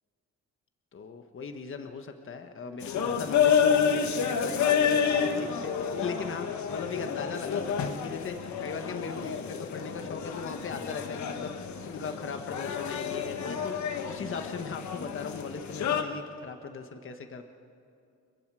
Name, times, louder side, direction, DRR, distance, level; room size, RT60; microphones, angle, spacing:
voice 1, 0.9-17.4, left 5 dB, 45° left, 6 dB, 1.5 m, -39 dB
sound 1, 2.8-16.0, left 7 dB, 70° left, 1.5 m, -29 dB
29.5 x 22.0 x 4.9 m, 2.5 s
cardioid pair, 90°, 30 cm